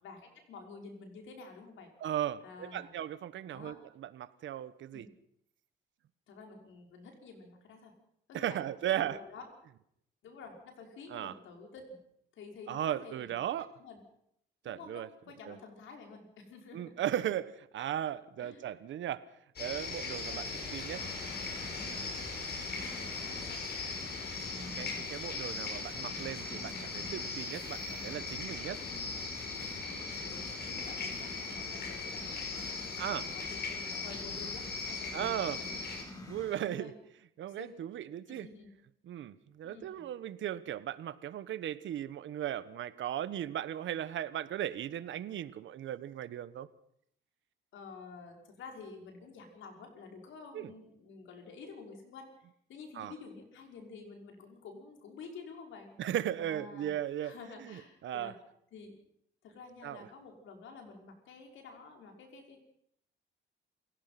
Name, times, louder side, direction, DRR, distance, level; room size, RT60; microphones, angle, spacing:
voice 1, 0.0-1.9 2.4-2.9 3.5-3.8 4.9-5.1 6.3-7.9 8.3-8.6 8.9-9.5 10.2-12.0 12.3-13.4 13.8-14.0 14.6-17.0 18.4-18.8 20.2-20.5 22.6-23.7 28.7-29.1 29.8-35.8 36.6-36.9 37.5-37.7 38.3-38.7 39.6-40.1 47.7-55.9 56.4-56.9 57.2-58.3 58.7-58.9 59.4-62.7, left 4 dB, 80° left, 2 dB, 5.7 m, -50 dB
voice 2, 2.0-5.1 8.3-9.2 11.1-11.3 12.7-13.7 14.6-15.1 15.5-15.6 16.7-19.2 19.6-20.5 20.7-21.1 24.8-28.8 33.0-33.3 35.1-35.6 36.3-36.9 37.4-38.5 39.0-46.7 50.5-50.7 52.9-53.1 56.0-57.3 57.6-58.3 59.8-60.1, right 11 dB, 70° right, 15 dB, 1.2 m, -37 dB
sound 1, 19.6-36.0, left 4 dB, 55° left, 6.6 m, -39 dB
sound 2, 20.8-36.7, left 1 dB, 15° left, 7.6 m, -50 dB
28.5 x 16.5 x 6.0 m, 0.72 s
cardioid pair, 90°, 20 cm